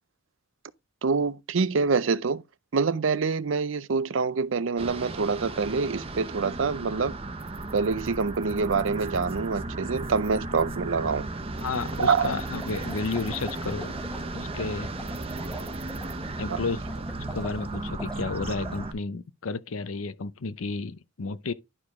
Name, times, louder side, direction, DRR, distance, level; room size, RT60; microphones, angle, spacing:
voice 1, 1.0-2.4 2.7-7.1 7.7-11.3 12.0-12.3 16.5-16.6, right 5 dB, 65° right, 0.5 m, -26 dB
sound 1, 4.8-18.9, right 2 dB, 30° right, 0.9 m, -35 dB
voice 2, 11.6-13.9 14.3-14.9 16.4-16.8 17.3-21.5, left 4 dB, 80° left, 0.6 m, -32 dB
sound 2, 12.4-18.9, equal, 5° left, 1.2 m, -44 dB
11.0 x 4.9 x 3.6 m
head